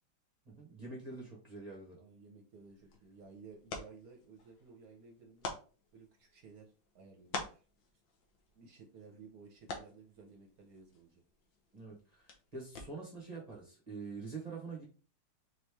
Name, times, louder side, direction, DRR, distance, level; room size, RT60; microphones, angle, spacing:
voice 1, 0.4-2.0 11.7-14.8, right 4 dB, 25° right, -4 dB, 1.0 m, -45 dB
voice 2, 2.0-5.5 5.9-7.7 8.5-11.2, right 5 dB, 60° right, 2 dB, 1.1 m, -56 dB
sound 1, 2.5-13.3, left 3 dB, 90° left, 1.6 m, -49 dB
4.1 x 3.1 x 3.4 m, 0.36 s
omnidirectional pair, 2.0 m